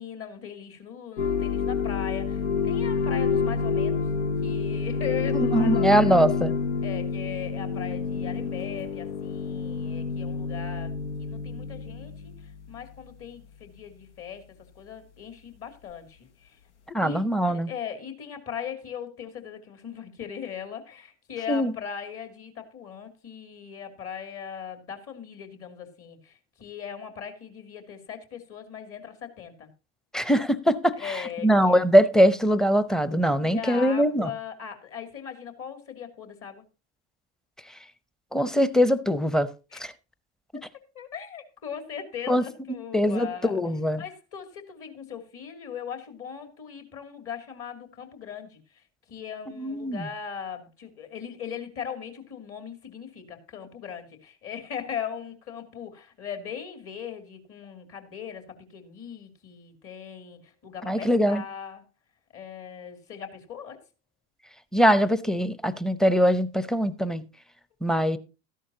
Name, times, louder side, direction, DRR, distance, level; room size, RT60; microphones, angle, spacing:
voice 1, 0.0-4.1 4.4-6.3 6.8-10.9 11.2-14.4 14.8-16.6 17.0-29.7 31.0-31.7 33.4-36.6 39.7-39.8 40.5-40.6 40.9-43.6 44.0-61.8 62.3-63.8, left 8 dB, 45° left, 2.6 m, -39 dB
sound 1, 1.2-12.7, left 5 dB, 80° left, 0.8 m, -28 dB
voice 2, 5.5-6.5 16.9-17.7 21.5-21.7 30.1-34.3 38.3-39.5 39.8-39.9 42.3-42.4 42.9-44.0 49.6-50.1 60.8-61.4 64.7-67.2 67.8-68.2, equal, ahead, 0.7 m, -22 dB
13.5 x 11.0 x 2.8 m
hypercardioid pair, 80°, 34 cm